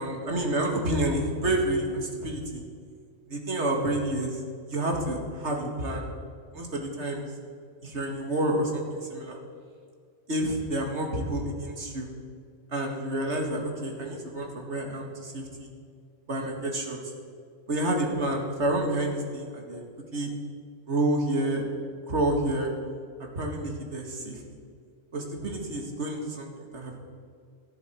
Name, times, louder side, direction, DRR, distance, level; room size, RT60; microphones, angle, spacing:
voice 1, 0.0-2.6 3.3-4.4 4.7-6.1 6.5-7.3 7.8-9.4 10.3-12.1 12.7-15.7 16.3-17.0 17.7-19.8 20.1-20.3 20.9-21.6 22.1-22.7 23.4-24.4 25.1-27.0, right 1 dB, 80° right, 1 dB, 2.4 m, -29 dB
18.5 x 13.0 x 4.6 m, 2.2 s
omnidirectional pair, 1.2 m